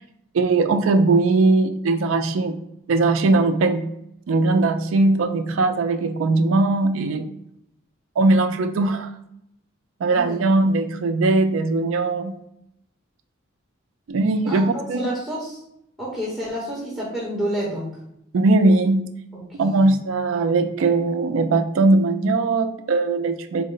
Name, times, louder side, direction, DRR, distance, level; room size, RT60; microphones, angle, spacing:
voice 1, 0.3-2.6 2.9-3.9 4.3-7.3 8.2-9.1 10.0-12.3 14.1-15.0 18.3-19.1 19.6-23.6, right 3 dB, 70° right, 9 dB, 0.4 m, -20 dB
voice 2, 14.5-15.6 16.0-17.9 19.3-20.0, equal, ahead, -6 dB, 0.9 m, -29 dB
4.1 x 2.1 x 3.7 m, 0.77 s
head